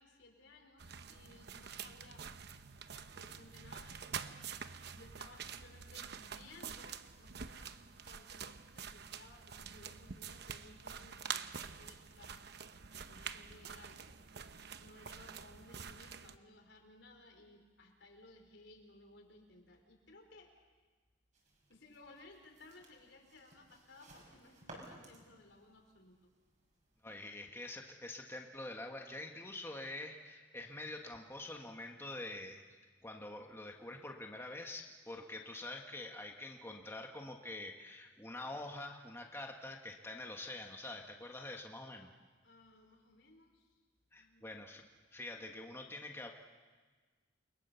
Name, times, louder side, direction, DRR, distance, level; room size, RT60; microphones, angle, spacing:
voice 1, 0.0-2.2 2.9-4.4 4.6-7.8 8.1-12.4 12.9-14.1 14.4-20.5 21.7-26.2 42.4-43.8 44.2-44.7, left 2 dB, 75° left, 3 dB, 4.7 m, -60 dB
sound 1, 0.8-16.4, right 7 dB, 60° right, 0.9 m, -47 dB
sound 2, 21.3-27.2, right 2 dB, 40° right, 6.2 m, -59 dB
voice 2, 27.0-32.6 33.0-42.1 44.1-44.8 45.1-46.3, left 2 dB, 15° left, 2 dB, 1.5 m, -46 dB
29.5 x 23.0 x 7.0 m, 1.4 s
head